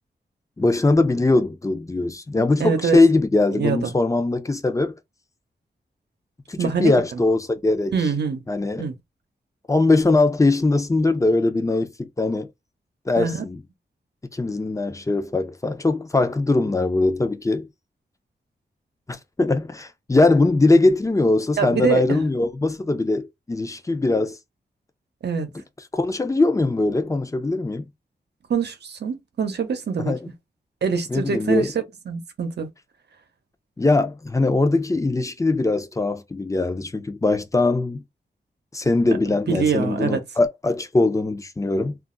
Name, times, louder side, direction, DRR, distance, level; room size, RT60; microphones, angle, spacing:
voice 1, 0.6-5.0 6.5-8.0 8.5-8.9 9.7-12.5 13.1-13.6 14.3-17.7 19.1-24.4 25.9-27.9 30.0-30.2 31.1-31.7 33.8-38.0 38.7-42.0, left 2 dB, 20° left, 0.5 m, -21 dB
voice 2, 2.4-3.0 3.6-3.9 6.6-7.2 7.9-8.4 8.8-8.9 13.2-13.4 21.6-22.2 25.2-25.5 28.5-30.1 30.8-31.7 32.1-32.7 39.3-40.2, right 6 dB, 75° right, 0.8 m, -24 dB
2.4 x 2.0 x 3.8 m
wide cardioid pair, 80°, 18 cm